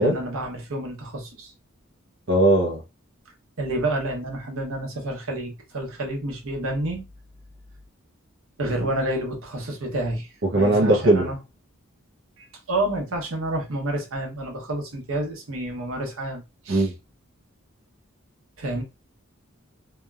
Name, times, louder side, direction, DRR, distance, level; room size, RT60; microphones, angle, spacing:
voice 1, 0.0-1.5 3.6-7.1 8.6-11.4 12.4-16.9 18.6-18.8, right 1 dB, 80° right, 0.9 m, -29 dB
voice 2, 2.3-2.8 10.5-11.3 16.7-16.9, right 1 dB, 55° right, 0.6 m, -19 dB
2.8 x 2.1 x 2.3 m
head